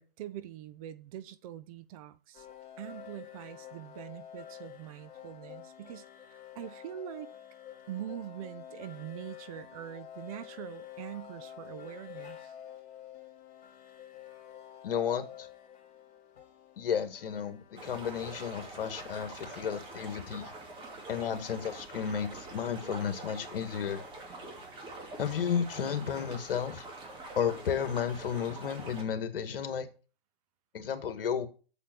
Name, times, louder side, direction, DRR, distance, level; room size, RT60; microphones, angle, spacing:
voice 1, 0.0-2.5 2.8-7.3 7.9-12.5, right 11 dB, 35° right, 0.8 m, -43 dB
sound 1, 2.3-20.3, left 10 dB, 25° left, 2.9 m, -49 dB
voice 2, 14.8-15.5 16.8-20.5 21.1-24.0 25.2-26.9 27.4-29.9 30.7-31.5, left 8 dB, 65° left, 1.9 m, -33 dB
sound 2, 17.8-29.0, right 2 dB, 15° right, 2.4 m, -45 dB
8.2 x 7.3 x 6.1 m
hypercardioid pair, 135°, 30 cm